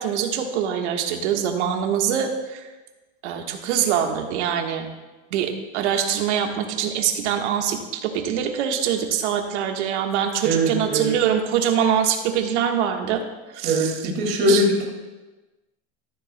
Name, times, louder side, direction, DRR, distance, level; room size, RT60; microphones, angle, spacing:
voice 1, 0.0-2.6 3.2-4.9 5.3-13.2 13.5-14.0 14.5-14.6, right 8 dB, 75° right, 3 dB, 1.4 m, -24 dB
voice 2, 10.4-11.1 13.6-14.8, right 1 dB, 30° right, 0 dB, 2.1 m, -21 dB
13.5 x 11.0 x 2.2 m, 1.2 s
supercardioid pair, 170°, 35 cm